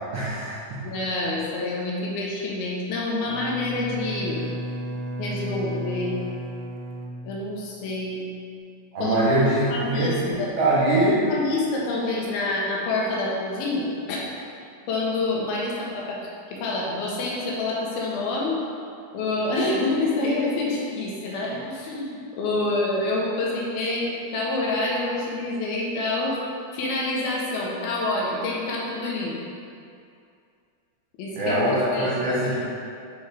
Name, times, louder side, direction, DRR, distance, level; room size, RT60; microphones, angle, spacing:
voice 1, 0.1-0.8 8.9-10.3 10.6-11.2 31.3-32.5, right 1 dB, 70° right, -9 dB, 1.9 m, -22 dB
voice 2, 0.8-4.4 5.2-6.2 7.2-8.2 9.0-10.5 11.3-14.2 14.9-16.2 16.5-18.6 19.1-26.4 26.7-29.4 31.2-31.6 31.9-32.3, left 2 dB, 75° left, -4 dB, 2.7 m, -27 dB
Bowed string instrument, 3.3-8.0, right 1 dB, 90° right, 2.6 m, -34 dB
8.6 x 4.2 x 3.4 m, 2.4 s
omnidirectional pair, 4.6 m